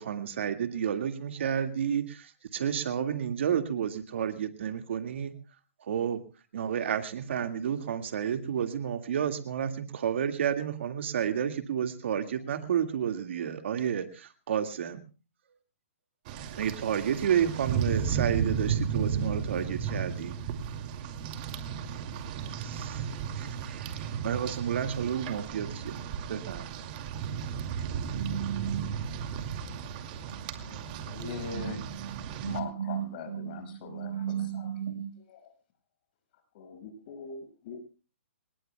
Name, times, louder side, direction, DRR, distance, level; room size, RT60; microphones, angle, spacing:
voice 1, 0.0-5.4 5.8-6.2 6.5-15.0 16.6-20.3 22.5-26.0 26.3-26.7, right 8 dB, 65° right, 1.9 m, -31 dB
Rain, 16.3-32.6, right 7 dB, 40° right, 2.4 m, -34 dB
voice 2, 28.1-28.9 30.3-30.4 31.5-31.6 31.9-32.1 32.4-35.1, right 9 dB, 80° right, 5.1 m, -35 dB
voice 3, 30.6-31.8 32.4-34.7 35.3-35.4 36.5-37.8, left 5 dB, 45° left, 5.8 m, -42 dB
27.0 x 19.0 x 2.3 m
hypercardioid pair, 140°, 7 cm